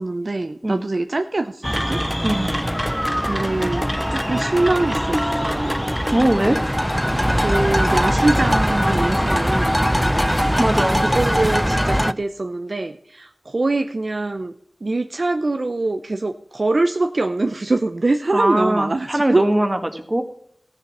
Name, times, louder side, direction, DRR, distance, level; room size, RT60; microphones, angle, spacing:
voice 1, 0.0-2.0 3.3-3.8 4.1-5.9 7.3-10.6 10.9-14.5 14.8-19.4, right 2 dB, 60° right, 8 dB, 0.6 m, -23 dB
sound 1, 1.6-12.1, equal, ahead, 0.4 m, -21 dB
voice 2, 6.1-6.6 10.6-11.0 18.3-20.2, right 1 dB, 30° right, 6 dB, 1.8 m, -20 dB
15.5 x 7.0 x 5.9 m, 0.66 s
wide cardioid pair, 65°, 0 cm